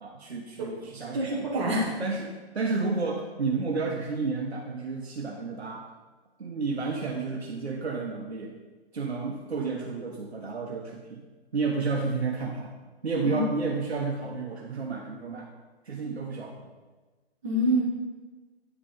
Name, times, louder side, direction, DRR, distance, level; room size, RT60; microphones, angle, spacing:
voice 1, 0.0-1.5 2.0-5.8 6.4-8.5 8.9-11.2 11.5-12.7 13.0-15.5 15.8-16.7, right 4 dB, 80° right, -1 dB, 1.1 m, -31 dB
voice 2, 1.1-1.9 13.2-13.4 17.4-17.8, right 1 dB, 30° right, -6 dB, 1.3 m, -26 dB
9.0 x 5.0 x 5.0 m, 1.3 s
hypercardioid pair, 155°, 32 cm